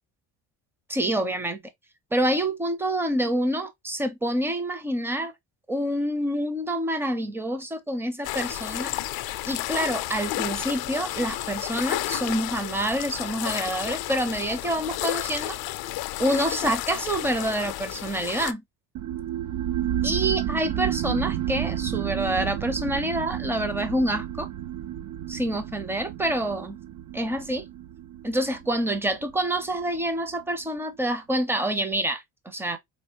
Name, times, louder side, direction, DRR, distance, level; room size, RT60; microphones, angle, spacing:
voice 1, 0.9-1.6 2.1-5.3 5.7-8.9 9.4-15.6 16.2-18.6 20.0-24.5 25.3-26.8 27.1-27.7 28.2-32.8, right 1 dB, 5° right, 0.5 m, -27 dB
sound 1, 8.2-18.5, left 16 dB, 65° left, 0.5 m, -32 dB
sound 2, 19.0-30.1, right 11 dB, 55° right, 0.5 m, -31 dB
4.4 x 2.9 x 2.8 m
cardioid pair, 140°, 40 cm